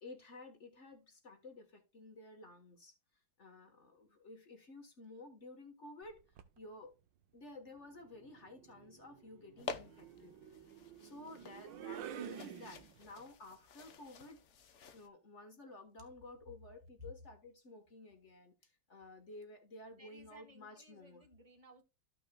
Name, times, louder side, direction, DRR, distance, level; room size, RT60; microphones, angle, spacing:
voice 1, 0.0-3.0 3.4-6.9 7.3-10.4 11.0-21.2, left 2 dB, 40° left, 1.2 m, -53 dB
sound 1, 6.0-6.6 7.9-13.2, right 10 dB, 70° right, 1.3 m, -50 dB
sound 2, 9.6-15.1, left 5 dB, 70° left, 0.6 m, -50 dB
voice 2, 19.8-21.8, left 1 dB, 20° right, 1.2 m, -58 dB
13.5 x 6.2 x 2.2 m
omnidirectional pair, 2.3 m